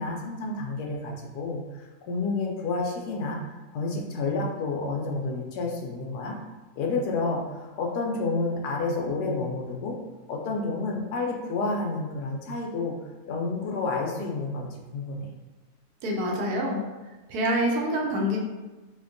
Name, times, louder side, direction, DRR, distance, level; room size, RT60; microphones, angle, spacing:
voice 1, 0.0-3.4 3.7-6.4 6.8-10.0 10.3-13.0 13.3-15.3, left 3 dB, 80° left, 0 dB, 1.1 m, -30 dB
voice 2, 16.0-16.8 17.3-18.4, equal, 70° right, -1 dB, 1.1 m, -26 dB
4.2 x 2.2 x 2.5 m, 1.2 s
omnidirectional pair, 1.7 m